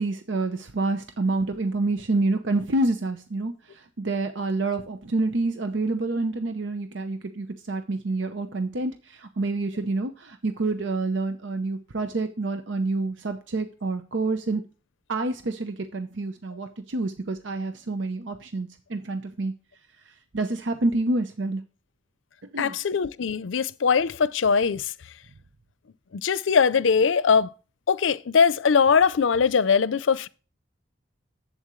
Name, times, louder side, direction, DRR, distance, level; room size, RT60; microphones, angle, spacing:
voice 1, 0.0-14.6 15.1-19.5 20.3-21.6 22.5-22.8, right 2 dB, 75° right, 0.8 m, -28 dB
voice 2, 22.6-24.8 26.2-27.5 27.9-30.3, left 6 dB, 85° left, 0.5 m, -21 dB
11.0 x 8.0 x 3.1 m
head